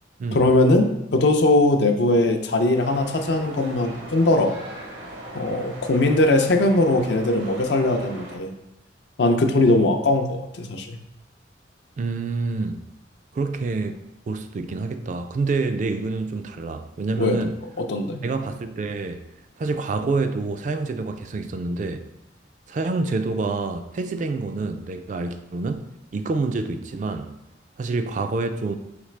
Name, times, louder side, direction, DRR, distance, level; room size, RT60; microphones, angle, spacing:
voice 1, 0.3-4.5 5.3-8.5 9.2-11.0 17.2-17.4 17.9-18.2, left 2 dB, 70° left, 0.5 m, -20 dB
sound 1, 2.7-8.4, right 1 dB, 80° right, 0.8 m, -39 dB
voice 2, 12.0-12.8 13.3-14.0 14.3-17.6 18.2-19.2 19.6-22.1 22.7-25.8 26.1-27.4 27.8-28.7, right 3 dB, 40° right, 0.3 m, -27 dB
5.0 x 3.2 x 3.2 m
head